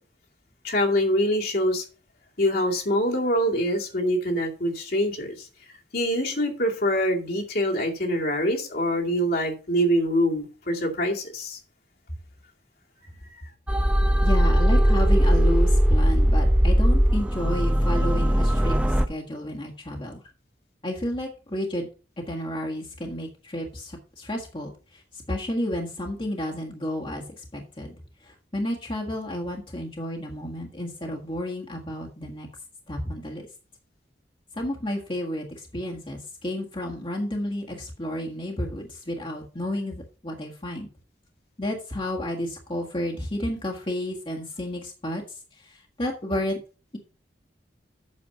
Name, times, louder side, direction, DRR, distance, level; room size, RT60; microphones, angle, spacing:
voice 1, 0.6-1.8 2.4-5.3 5.9-11.6, equal, 60° left, 2.3 m, -24 dB
sound 1, 13.7-19.0, equal, 5° right, 0.8 m, -19 dB
voice 2, 14.2-20.2 20.8-21.9 22.3-27.9 28.2-32.5 32.9-33.4 34.5-40.9 41.6-46.6, left 1 dB, 30° left, 1.6 m, -31 dB
8.5 x 6.5 x 5.6 m
head